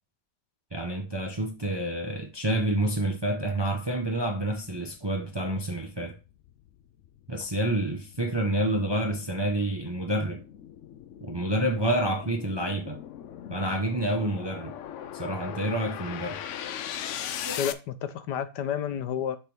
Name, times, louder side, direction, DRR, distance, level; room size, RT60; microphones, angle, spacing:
voice 1, 0.7-6.2 7.3-10.4 11.2-13.0 13.5-14.7 15.1-16.4 17.4-17.6, right 1 dB, 25° right, 0.6 m, -28 dB
sound 1, 4.9-17.7, left 10 dB, 70° left, 0.7 m, -40 dB
voice 2, 17.6-19.4, left 9 dB, 85° left, 1.4 m, -30 dB
6.6 x 3.5 x 6.0 m
omnidirectional pair, 1.8 m